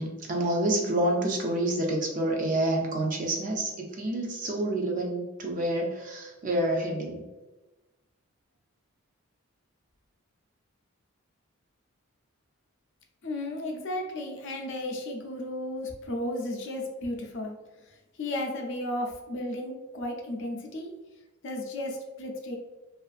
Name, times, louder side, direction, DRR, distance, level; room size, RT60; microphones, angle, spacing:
voice 1, 0.0-7.2, right 1 dB, 35° right, 0 dB, 0.3 m, -28 dB
voice 2, 13.2-17.6 17.9-20.9 21.4-22.6, left 1 dB, 55° left, 2 dB, 0.5 m, -34 dB
2.4 x 2.4 x 2.3 m, 1.1 s
head